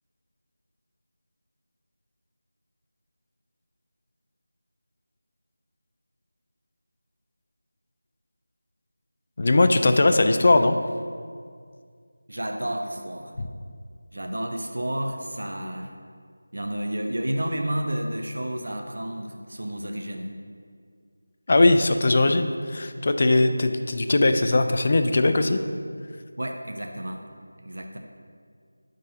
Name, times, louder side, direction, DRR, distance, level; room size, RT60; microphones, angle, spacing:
voice 1, 9.4-10.8 13.4-13.5 21.5-25.6, left 2 dB, 35° left, 8 dB, 0.3 m, -20 dB
voice 2, 12.3-13.3 14.1-15.9 16.5-20.3 26.4-27.2 27.6-28.0, right 1 dB, 75° right, 3 dB, 0.6 m, -31 dB
9.6 x 3.8 x 2.7 m, 2.1 s
figure-of-eight pair, 175°, 0 cm